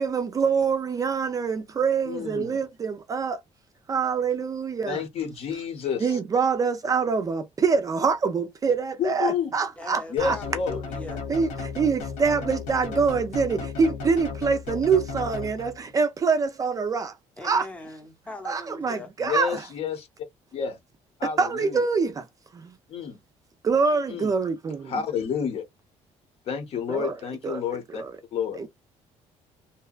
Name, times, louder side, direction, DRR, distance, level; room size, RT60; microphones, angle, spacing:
voice 1, 0.0-3.4 3.9-5.0 6.0-10.4 11.3-17.1 17.4-17.7 18.5-19.7 21.4-22.3 22.5-22.7 23.6-25.0 26.9-27.2 27.4-27.6 28.0-28.1 28.6-28.7, right 5 dB, 30° right, 0.4 m, -25 dB
voice 2, 2.1-2.6 4.9-6.2 9.0-9.5 10.1-10.8 19.2-20.1 20.5-20.8 21.2-21.8 22.9-23.2 24.1-24.3 24.9-25.6 26.5-28.0 28.3-28.6, left 7 dB, 55° left, 0.9 m, -29 dB
voice 3, 9.8-11.2 17.4-19.1, left 2 dB, 10° left, 0.7 m, -40 dB
sound 1, 10.2-15.9, left 5 dB, 85° left, 0.9 m, -35 dB
2.8 x 2.2 x 2.3 m
cardioid pair, 135°, 12 cm